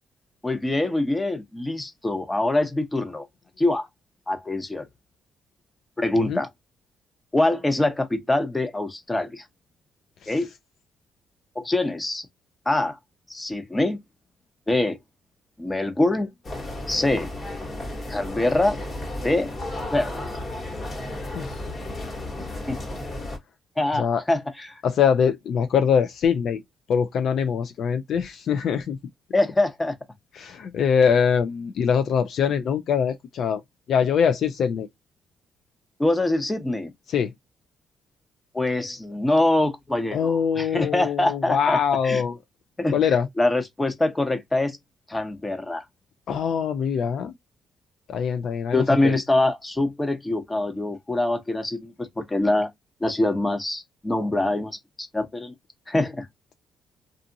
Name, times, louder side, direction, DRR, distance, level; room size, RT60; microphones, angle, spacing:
voice 1, 0.4-3.3 3.6-3.9 4.3-4.9 6.0-6.5 7.3-9.4 10.3-10.5 11.6-12.3 12.7-13.0 13.3-14.0 14.7-15.0 15.6-16.3 16.9-17.3 18.1-18.8 19.2-19.5 19.9-20.2 22.7-22.8 23.8-24.8 29.3-29.9 36.0-36.9 38.5-42.2 42.8-43.0 43.4-44.8 45.1-45.8 48.7-52.7 53.0-55.5 55.9-56.3, left 2 dB, 15° left, 0.7 m, -24 dB
sound 1, 16.4-23.4, left 1 dB, 40° left, 1.3 m, -33 dB
voice 2, 24.8-26.6 26.9-29.0 30.4-33.6 33.9-34.9 37.1-37.3 40.1-42.4 42.9-43.3 46.3-47.3 48.1-49.2, left 7 dB, 65° left, 0.4 m, -23 dB
2.7 x 2.4 x 2.5 m
cardioid pair, 90°, 0 cm